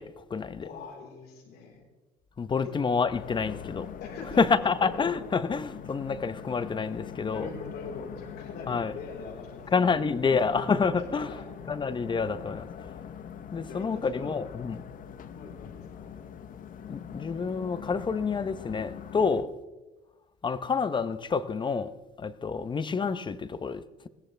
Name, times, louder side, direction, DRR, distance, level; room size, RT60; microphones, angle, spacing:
voice 1, 0.0-0.7 2.4-3.9 4.4-7.5 8.7-8.9 9.7-11.3 11.7-12.7 13.5-14.8 16.9-19.5 20.4-24.1, left 5 dB, 30° left, 0.8 m, -28 dB
voice 2, 0.6-1.8 2.6-2.7 4.0-4.9 7.3-10.7 11.0-11.4 11.9-12.0 13.7-14.4 15.3-16.1 19.2-19.5 22.6-22.7, left 4 dB, 75° left, 4.2 m, -42 dB
sound 1, 3.1-19.4, left 8 dB, 55° left, 1.0 m, -43 dB
21.5 x 16.5 x 3.4 m
cardioid pair, 110°, 17 cm